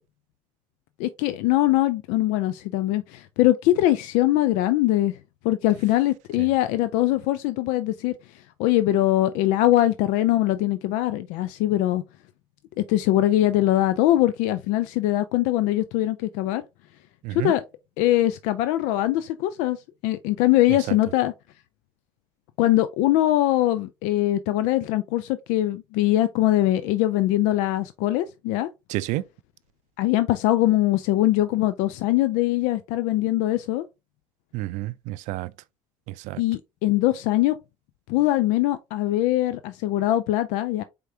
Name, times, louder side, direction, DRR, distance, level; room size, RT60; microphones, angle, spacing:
voice 1, 1.0-5.2 5.4-8.1 8.6-12.0 12.8-16.6 17.3-17.6 18.0-19.8 20.0-21.3 22.6-28.7 30.0-33.8 36.4-37.5 38.1-40.8, left 15 dB, 75° left, 0.4 m, -22 dB
voice 2, 28.9-29.2 34.5-35.5 36.2-36.4, right 18 dB, 70° right, 0.4 m, -29 dB
4.7 x 3.5 x 2.7 m
hypercardioid pair, 70°, 13 cm